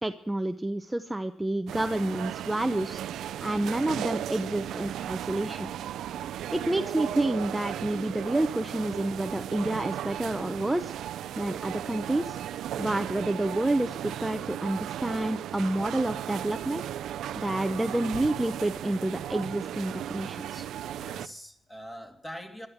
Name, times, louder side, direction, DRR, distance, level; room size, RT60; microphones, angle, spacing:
voice 1, 0.0-5.7 6.5-12.4 12.8-16.8 17.4-20.7, right 1 dB, 10° right, 8 dB, 0.7 m, -29 dB
sound 1, 1.7-21.3, right 11 dB, 75° right, 0.5 m, -36 dB
voice 2, 20.7-22.7, equal, 15° left, 4 dB, 3.0 m, -43 dB
14.5 x 12.0 x 8.0 m, 0.70 s
cardioid pair, 90°, 0 cm